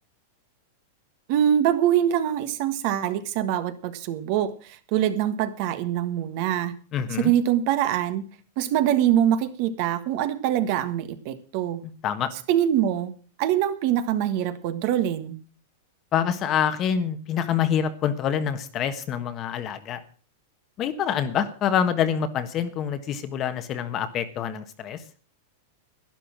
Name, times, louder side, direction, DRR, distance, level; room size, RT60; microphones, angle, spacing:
voice 1, 1.3-6.7 7.2-8.2 8.6-11.8 12.5-13.1 13.4-15.4, right 10 dB, 50° right, 10 dB, 1.5 m, -24 dB
voice 2, 6.9-7.3 12.0-12.3 16.1-20.0 20.8-25.0, left 8 dB, 30° left, 10 dB, 1.4 m, -26 dB
12.0 x 11.0 x 6.0 m, 0.39 s
supercardioid pair, 145°, 0 cm